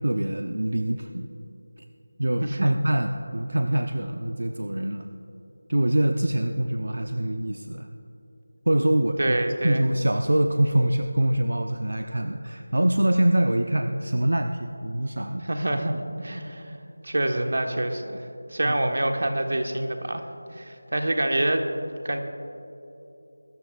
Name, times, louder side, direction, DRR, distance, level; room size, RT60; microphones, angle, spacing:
voice 1, 0.0-1.3 2.2-5.1 5.7-7.9 8.7-15.4 18.6-18.7, right 1 dB, 85° right, 6 dB, 0.7 m, -24 dB
voice 2, 2.4-2.8 9.2-9.8 15.4-16.8 17.0-20.2 20.5-21.6 22.0-22.2, right 1 dB, 65° right, 5 dB, 1.4 m, -26 dB
23.0 x 13.5 x 2.5 m, 3.0 s
figure-of-eight pair, 175°, 0 cm